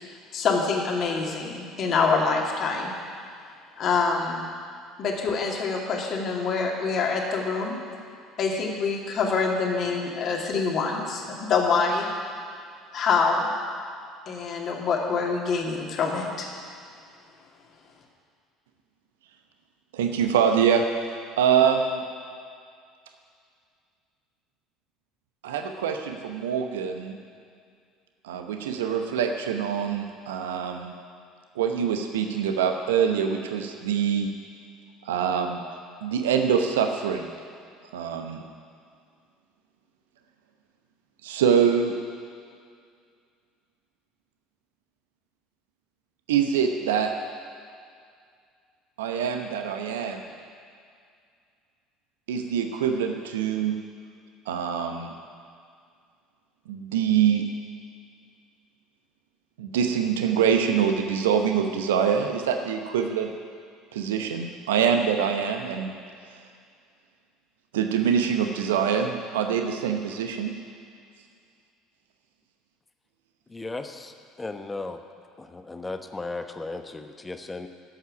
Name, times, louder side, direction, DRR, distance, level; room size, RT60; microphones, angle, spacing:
voice 1, 0.3-2.9 3.8-4.5 5.0-7.7 8.4-12.1 12.9-13.5 14.3-16.5, left 4 dB, 45° left, 0 dB, 2.5 m, -25 dB
voice 2, 19.9-20.8 21.4-22.0 25.4-27.2 28.2-30.9 31.6-34.3 35.1-35.6 36.0-37.3 37.9-38.4 41.2-41.9 46.3-47.1 49.0-50.2 52.3-53.8 54.5-55.1 56.7-57.4 59.6-63.3 63.9-66.0 67.7-70.5, right 7 dB, 70° right, 5 dB, 0.9 m, -24 dB
voice 3, 73.5-75.0 75.4-77.7, left 3 dB, 15° left, 7 dB, 1.1 m, -36 dB
12.0 x 8.2 x 9.7 m, 2.2 s
figure-of-eight pair, 60°, 0 cm